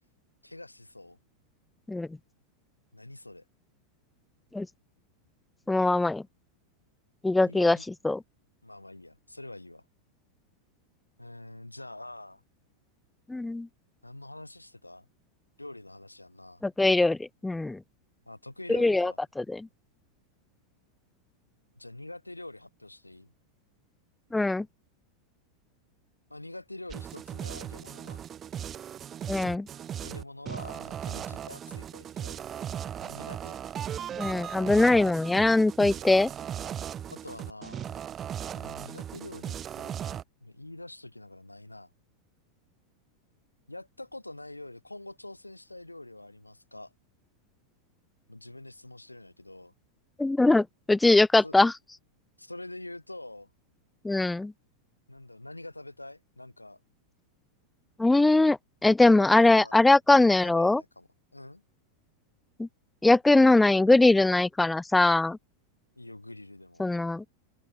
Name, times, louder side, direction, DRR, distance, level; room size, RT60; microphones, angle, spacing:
voice 1, 0.4-1.2 2.9-3.4 7.4-7.9 8.6-9.8 11.2-12.4 14.0-15.1 15.6-16.6 18.3-19.2 21.7-23.3 26.3-28.2 30.0-32.4 33.0-33.6 37.1-38.0 38.5-41.9 43.7-46.9 48.3-49.7 51.4-51.6 52.4-53.5 55.1-56.8 59.3-59.8 60.1-61.6 65.9-66.8, left 2 dB, 85° left, 6.0 m, -45 dB
voice 2, 5.7-6.2 7.2-7.8 8.0-8.2 13.3-13.7 16.6-17.8 18.7-19.7 24.3-24.7 29.3-29.7 34.2-36.3 50.2-51.7 54.0-54.5 58.0-60.8 62.6-62.7 63.0-65.4 66.8-67.2, left 2 dB, 5° left, 0.6 m, -22 dB
sound 1, 26.9-40.2, right 9 dB, 25° right, 3.0 m, -37 dB
open air
figure-of-eight pair, 90°, 0 cm